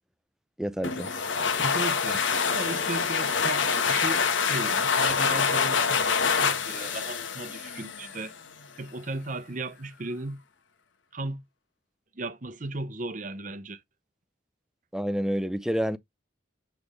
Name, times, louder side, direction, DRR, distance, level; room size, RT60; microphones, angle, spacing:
voice 1, 0.6-1.1 14.9-16.0, equal, 5° right, 0.4 m, -28 dB
sound 1, 0.8-8.3, left 6 dB, 80° left, 1.1 m, -26 dB
voice 2, 1.3-8.3 8.8-10.4 11.1-11.4 12.1-13.8, right 2 dB, 40° right, 0.7 m, -36 dB
8.0 x 3.4 x 3.6 m
head